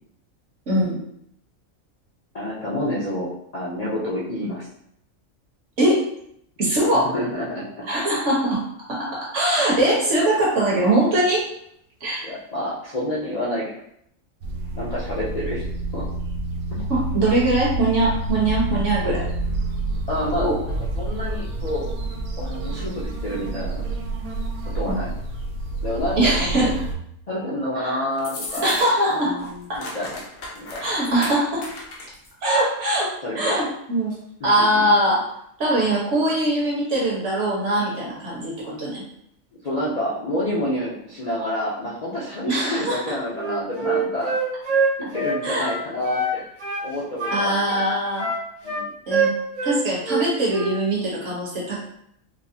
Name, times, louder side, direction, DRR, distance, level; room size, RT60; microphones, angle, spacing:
voice 1, 0.7-1.0 5.8-6.0 6.6-7.1 7.9-8.6 8.9-11.5 12.0-12.3 16.9-19.2 20.4-20.6 24.9-25.0 26.1-26.7 27.7-28.0 28.6-29.8 30.8-31.6 32.4-34.1 34.4-35.2 35.6-39.0 42.5-43.1 45.4-45.7 47.3-48.3 49.1-49.3 49.6-51.8, right 1 dB, 60° right, -5 dB, 1.5 m, -22 dB
voice 2, 2.3-4.7 6.9-7.9 12.2-13.7 14.7-15.7 15.9-16.0 16.7-16.8 20.1-21.9 22.4-23.8 24.7-25.1 25.8-26.7 27.3-28.8 29.1-30.1 30.5-30.8 33.2-33.7 34.4-34.8 39.6-44.3 45.1-46.4 46.8-47.6 48.6-48.9, left 1 dB, 45° left, -9 dB, 0.5 m, -28 dB
sound 1, 14.4-27.0, right 2 dB, 85° right, 1.1 m, -28 dB
sound 2, 28.2-29.1 29.4-32.3, left 2 dB, 75° left, 1.2 m, -36 dB
Wind instrument woodwind instrument, 43.3-46.3 46.6-46.9 47.2-49.8 50.0-50.8, right 3 dB, 40° right, 0.9 m, -24 dB
4.7 x 2.0 x 2.7 m, 0.72 s
omnidirectional pair, 1.5 m